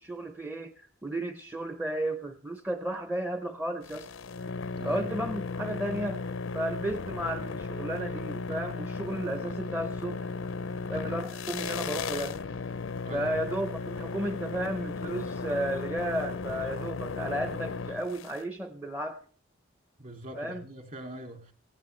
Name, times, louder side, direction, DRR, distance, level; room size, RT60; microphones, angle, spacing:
voice 1, 0.0-4.1 4.8-6.2 6.5-10.3 10.9-12.4 13.1-19.3 20.3-20.6, right 1 dB, 10° right, 8 dB, 0.6 m, -33 dB
sound 1, 3.8-18.4, left 4 dB, 85° left, 0.6 m, -35 dB
voice 2, 4.7-5.0 13.0-13.3 20.0-21.5, right 1 dB, 45° right, 5 dB, 2.4 m, -42 dB
18.5 x 16.0 x 3.2 m, 0.40 s
head